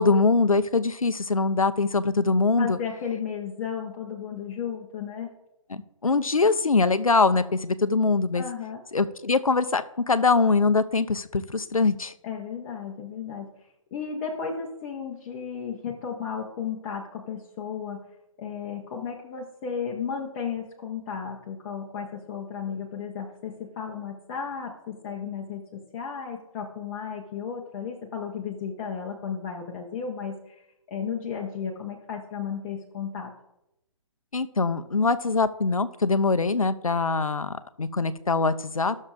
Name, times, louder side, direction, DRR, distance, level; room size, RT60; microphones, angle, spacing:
voice 1, 0.0-2.8 5.7-8.4 8.9-12.1 34.3-39.0, left 4 dB, 85° left, 13 dB, 0.6 m, -23 dB
voice 2, 2.6-5.3 8.3-8.8 12.2-13.5 13.9-18.1 18.4-30.6 30.9-33.3, left 7 dB, 30° left, -1 dB, 0.9 m, -34 dB
14.0 x 6.4 x 2.5 m, 0.86 s
figure-of-eight pair, 130°, 17 cm